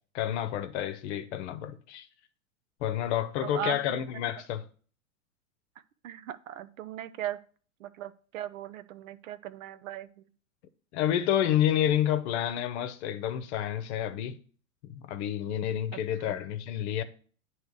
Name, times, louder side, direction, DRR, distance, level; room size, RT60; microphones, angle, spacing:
voice 1, 0.1-2.1 2.8-4.6 10.9-14.4 14.8-17.0, left 11 dB, 55° left, 0.8 m, -29 dB
voice 2, 3.4-4.2 6.0-7.4 7.8-10.3 15.9-16.0 16.2-16.4, right 10 dB, 75° right, 0.6 m, -38 dB
9.1 x 3.1 x 4.7 m
hypercardioid pair, 105°, 41 cm